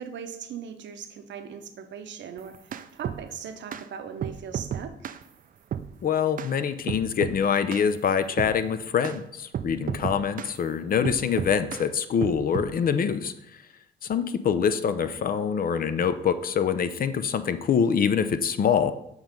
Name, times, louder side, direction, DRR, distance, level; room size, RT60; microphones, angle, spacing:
voice 1, 0.0-2.5 2.9-5.0 14.2-14.3, right 7 dB, 65° right, 8 dB, 0.7 m, -39 dB
sound 1, 2.4-3.2 3.7-3.9 4.2-5.2 5.7-5.9 6.4-6.5 6.9-7.4 7.7-7.9 8.4-8.6 9.0-9.2 9.5-10.6 11.0-11.9 12.2-12.7, right 9 dB, 45° right, 0.4 m, -32 dB
voice 2, 6.0-13.3 14.0-18.9, left 7 dB, 45° left, 11 dB, 0.5 m, -25 dB
7.3 x 3.1 x 5.1 m, 0.78 s
cardioid pair, 90°, 20 cm